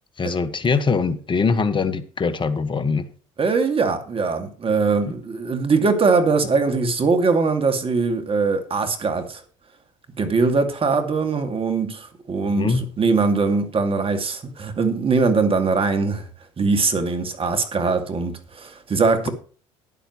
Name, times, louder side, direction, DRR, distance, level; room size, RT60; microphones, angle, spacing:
voice 1, 0.2-3.0 5.1-5.2 12.6-12.8, left 4 dB, 30° left, 1.6 m, -22 dB
voice 2, 3.4-9.4 10.2-16.2 16.6-19.3, right 4 dB, 35° right, 2.5 m, -21 dB
13.0 x 10.0 x 3.2 m
hypercardioid pair, 70°, 16 cm